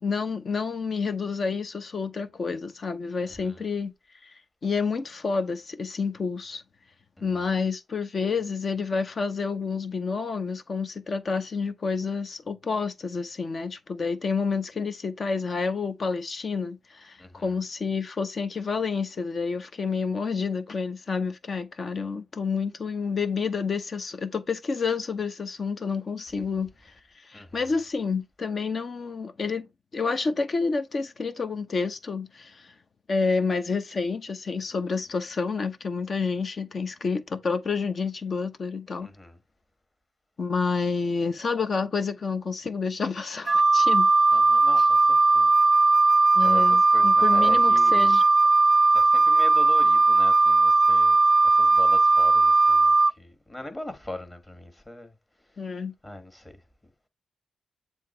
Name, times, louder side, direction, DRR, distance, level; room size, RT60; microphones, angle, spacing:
voice 1, 0.0-3.9 4.2-4.3 4.6-6.6 7.2-26.9 27.2-29.7 29.9-32.7 33.1-39.1 40.4-44.1 46.3-48.2 55.6-55.9, left 5 dB, 50° left, 0.9 m, -29 dB
voice 2, 3.2-3.7 7.2-7.6 17.2-17.6 26.3-26.5 27.3-27.8 39.0-39.4 44.3-45.5 46.4-48.2 48.9-51.2 51.4-55.2 55.5-55.7 56.0-56.6, left 1 dB, 20° left, 1.8 m, -41 dB
Wind instrument woodwind instrument, 43.5-53.1, right 3 dB, 30° right, 0.4 m, -18 dB
7.5 x 3.0 x 4.3 m
supercardioid pair, 50°, 0 cm